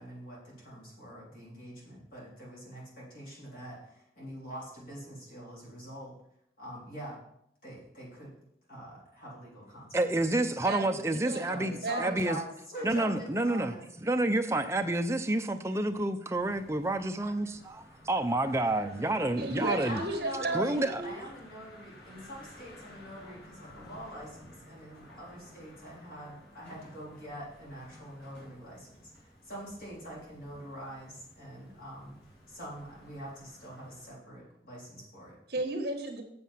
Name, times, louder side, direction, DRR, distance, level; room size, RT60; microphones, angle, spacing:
voice 1, 0.0-6.1 6.6-7.2 7.6-8.4 8.7-10.1 11.5-14.2 19.7-32.2 32.5-35.4, equal, 50° left, -5 dB, 3.5 m, -44 dB
voice 2, 9.9-12.4 12.8-13.7 14.0-20.0 20.5-21.0, right 2 dB, 15° right, 7 dB, 0.5 m, -29 dB
voice 3, 10.6-11.5 11.8-12.2 19.4-21.2 35.5-36.2, right 2 dB, 60° right, 4 dB, 1.5 m, -34 dB
sound 1, 16.3-34.1, left 1 dB, 85° left, 4.5 m, -54 dB
7.6 x 7.2 x 5.6 m, 0.76 s
head